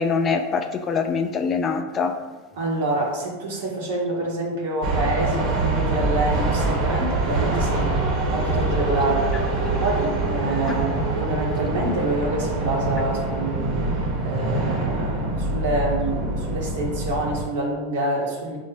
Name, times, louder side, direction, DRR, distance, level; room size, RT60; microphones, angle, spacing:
voice 1, 0.0-2.1 10.7-10.8, left 5 dB, 30° left, 6 dB, 0.3 m, -24 dB
voice 2, 2.6-7.9 8.3-9.5 9.8-18.6, right 2 dB, 80° right, -3 dB, 0.9 m, -27 dB
sound 1, 4.8-17.4, right 2 dB, 50° right, 1.0 m, -24 dB
4.9 x 2.0 x 3.4 m, 1.2 s
hypercardioid pair, 115°, 0 cm